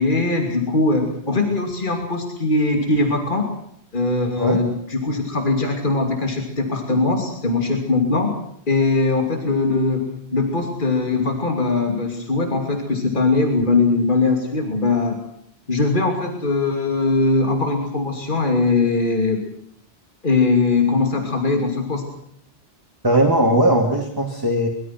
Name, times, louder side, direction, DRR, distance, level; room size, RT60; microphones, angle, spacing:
voice 1, 0.0-3.5 3.9-8.3 8.7-15.2 15.7-19.4 20.2-22.0, left 3 dB, 50° left, 4 dB, 3.0 m, -20 dB
voice 2, 23.0-24.7, right 1 dB, 20° right, 1 dB, 2.6 m, -18 dB
24.5 x 22.0 x 6.0 m, 0.68 s
omnidirectional pair, 1.1 m